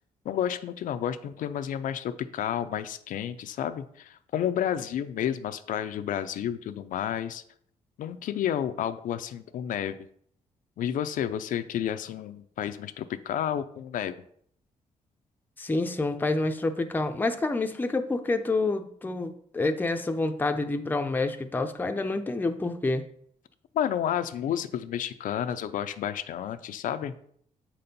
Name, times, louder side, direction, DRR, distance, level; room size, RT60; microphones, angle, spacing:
voice 1, 0.3-7.4 8.0-10.0 10.8-14.1 23.7-27.1, left 10 dB, 70° left, 10 dB, 0.5 m, -31 dB
voice 2, 15.6-23.0, left 2 dB, 15° left, 7 dB, 0.5 m, -28 dB
7.6 x 4.3 x 5.2 m, 0.64 s
cardioid pair, 145°, 14 cm